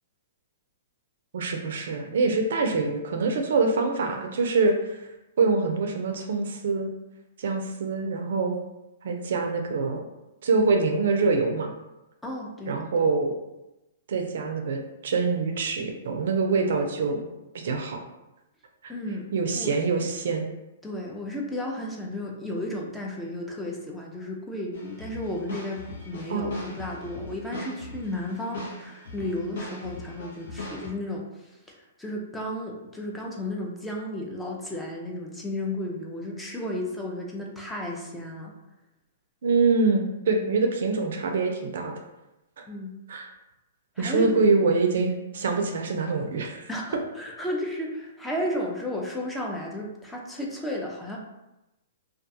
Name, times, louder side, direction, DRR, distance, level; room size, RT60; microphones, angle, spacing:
voice 1, 1.3-5.1 5.4-6.9 7.4-8.5 9.0-10.0 10.4-11.7 12.7-13.3 14.1-17.2 17.5-18.0 19.3-20.5 26.3-26.7 39.4-41.9 42.6-42.7 43.1-43.3 44.0-46.7, right 4 dB, 65° right, 4 dB, 0.4 m, -25 dB
voice 2, 12.2-12.9 18.9-19.8 20.8-31.3 31.7-38.5 42.7-42.9 44.0-44.4 46.7-51.2, left 1 dB, 5° left, -2 dB, 0.4 m, -33 dB
sound 1, 24.7-30.9, left 3 dB, 70° left, 0.9 m, -40 dB
2.3 x 2.2 x 2.6 m, 0.96 s
hypercardioid pair, 125°, 0 cm